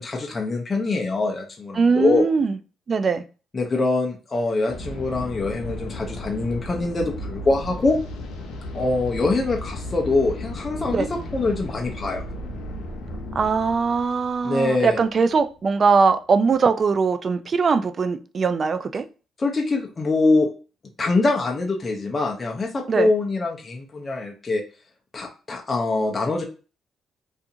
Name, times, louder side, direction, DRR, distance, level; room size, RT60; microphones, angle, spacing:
voice 1, 0.0-2.3 3.5-8.0 8.7-12.2 14.4-15.0 19.4-20.5 21.0-24.6 25.1-26.4, left 3 dB, 30° left, 1 dB, 0.5 m, -24 dB
voice 2, 1.8-2.6 2.9-3.2 10.9-11.1 13.4-19.0 22.9-23.1, right 5 dB, 45° right, 10 dB, 0.3 m, -21 dB
sound 1, 4.7-15.4, left 1 dB, 85° left, 0.6 m, -35 dB
2.4 x 2.4 x 2.7 m, 0.35 s
cardioid pair, 90°, 0 cm